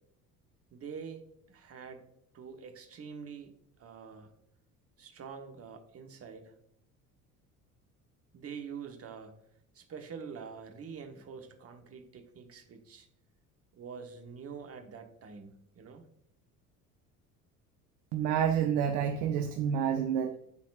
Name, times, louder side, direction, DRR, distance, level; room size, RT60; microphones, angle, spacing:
voice 1, 0.7-2.0 2.3-3.5 3.8-4.3 5.0-6.5 8.3-9.4 9.7-13.1 13.7-16.0, right 6 dB, 30° right, 5 dB, 1.1 m, -46 dB
voice 2, 18.1-20.3, right 8 dB, 50° right, 6 dB, 0.7 m, -28 dB
12.0 x 4.1 x 2.4 m, 0.72 s
figure-of-eight pair, 60°, 45 cm